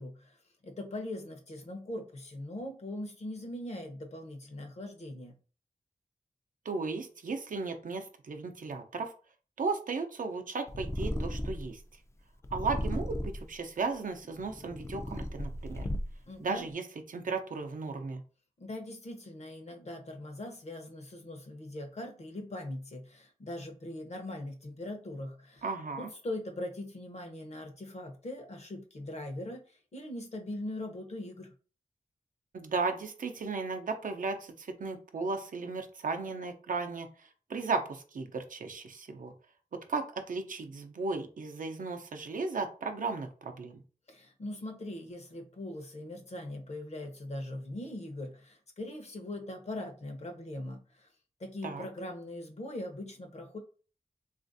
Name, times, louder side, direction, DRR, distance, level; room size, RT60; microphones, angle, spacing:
voice 1, 0.0-5.3 16.3-16.7 18.6-25.6 26.0-31.5 44.1-51.1 51.4-53.6, left 1 dB, 50° left, 4 dB, 0.7 m, -41 dB
voice 2, 6.6-9.1 9.6-11.8 12.5-15.9 16.4-18.2 25.6-26.1 32.5-39.3 39.7-43.8 51.6-51.9, right 4 dB, 70° right, 6 dB, 0.5 m, -35 dB
Purr, 10.7-11.8 12.4-13.5 14.2-16.3, equal, 20° left, 0.3 m, -35 dB
3.2 x 2.5 x 2.5 m, 0.38 s
wide cardioid pair, 85°, 14 cm